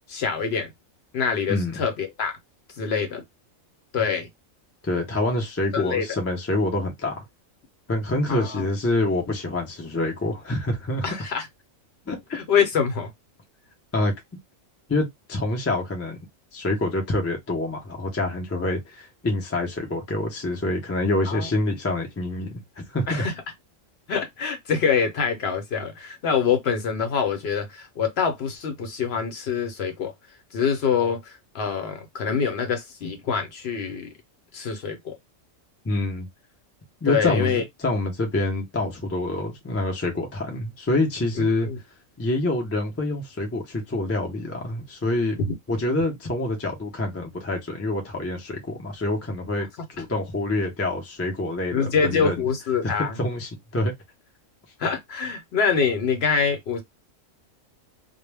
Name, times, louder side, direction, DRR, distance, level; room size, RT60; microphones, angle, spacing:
voice 1, 0.1-0.7 1.1-2.3 2.8-3.2 3.9-4.3 5.7-6.1 8.3-8.7 11.0-11.5 12.3-13.1 21.3-21.5 23.1-23.3 24.1-30.1 30.5-34.1 34.5-35.2 37.1-37.6 41.4-41.8 45.5-45.6 51.7-53.1 54.8-56.8, left 6 dB, 60° left, 0.8 m, -25 dB
voice 2, 4.8-7.2 7.9-11.0 12.1-12.2 13.9-14.1 14.9-16.2 16.5-23.3 35.8-36.3 37.0-41.7 42.2-45.4 45.7-52.4 52.8-53.9, left 2 dB, 25° left, 0.3 m, -26 dB
2.1 x 2.1 x 3.2 m
omnidirectional pair, 1.3 m